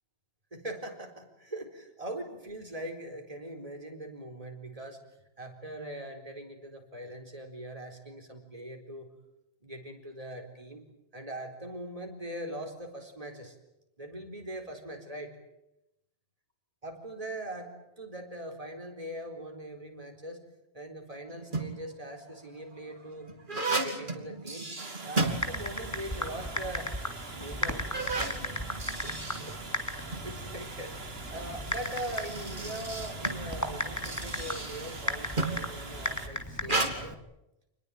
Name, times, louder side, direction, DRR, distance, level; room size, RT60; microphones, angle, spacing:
voice 1, 0.5-5.0 5.4-9.1 9.6-10.8 11.1-13.6 14.0-15.4 16.8-20.4 20.7-23.3 23.7-24.7 25.0-26.9 27.3-27.8 28.9-29.6 30.1-37.1, right 1 dB, 35° right, 3 dB, 4.4 m, -41 dB
sound 1, 21.3-21.9 22.6-26.0 26.3-26.4 27.1-27.2 27.7-30.3 31.5-35.7 36.6-36.9, right 2 dB, 50° right, 3.0 m, -34 dB
Water, 24.8-36.3, right 3 dB, 75° right, 2.3 m, -44 dB
Typing, 25.2-37.1, left 1 dB, 15° left, 2.8 m, -37 dB
27.0 x 20.5 x 9.0 m, 0.87 s
omnidirectional pair, 1.1 m